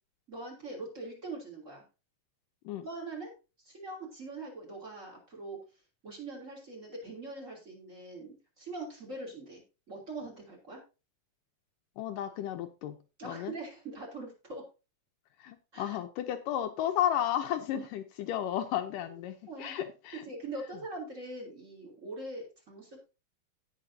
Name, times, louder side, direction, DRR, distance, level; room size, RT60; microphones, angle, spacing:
voice 1, 0.3-1.8 2.8-5.6 6.0-10.8 13.2-14.7 15.7-16.0 17.7-17.9 19.5-19.7 20.1-23.0, right 2 dB, 20° right, 1 dB, 3.1 m, -42 dB
voice 2, 12.0-13.0 13.2-13.5 15.4-20.2, left 11 dB, 75° left, 7 dB, 2.3 m, -33 dB
17.0 x 6.1 x 2.7 m, 0.29 s
omnidirectional pair, 4.0 m